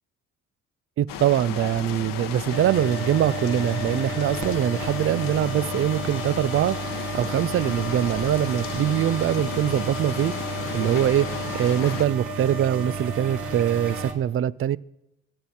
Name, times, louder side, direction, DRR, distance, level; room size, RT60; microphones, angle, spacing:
voice 1, 1.0-6.8 7.1-10.3 10.7-14.8, right 11 dB, 40° right, 0.4 m, -23 dB
sound 1, 1.1-12.0, left 8 dB, 70° left, 1.1 m, -34 dB
sound 2, 2.5-14.1, right 2 dB, 60° right, 1.8 m, -32 dB
24.0 x 8.1 x 4.3 m
cardioid pair, 85°, 34 cm